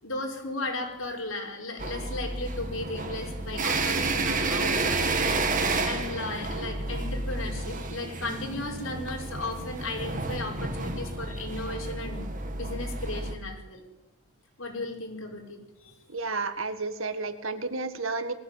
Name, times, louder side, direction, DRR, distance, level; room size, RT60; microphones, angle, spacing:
voice 1, 0.0-5.3 5.8-12.3 12.5-13.8 14.6-16.0, left 2 dB, 70° left, 2 dB, 5.2 m, -35 dB
sound 1, 1.8-13.3, right 3 dB, 35° right, 2.1 m, -30 dB
voice 2, 16.1-18.3, right 3 dB, 70° right, 10 dB, 1.8 m, -31 dB
21.5 x 15.5 x 9.1 m, 0.99 s
head